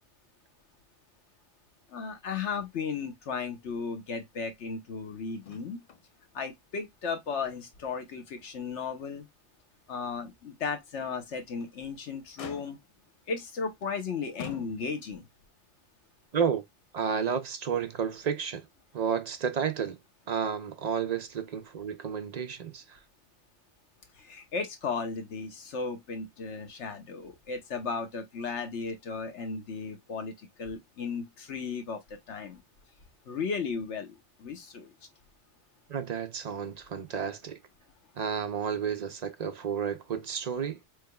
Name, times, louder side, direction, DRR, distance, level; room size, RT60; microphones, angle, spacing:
voice 1, 1.9-5.8 6.3-9.2 9.9-12.8 13.3-15.3 24.1-32.6 33.2-34.9, left 5 dB, 75° left, 1.3 m, -35 dB
Motor vehicle (road), 5.4-6.1 6.4-6.5 7.0-7.9 8.4-8.5 9.0-9.1 11.3-11.8 12.4-13.1 13.8-14.0 14.4-15.2 16.2-16.3, left 7 dB, 55° left, 0.4 m, -46 dB
voice 2, 16.3-16.6 16.9-18.7 18.9-20.0 20.3-23.0 35.9-37.6 38.2-40.8, right 7 dB, 50° right, 0.5 m, -31 dB
4.6 x 3.5 x 2.2 m
omnidirectional pair, 1.2 m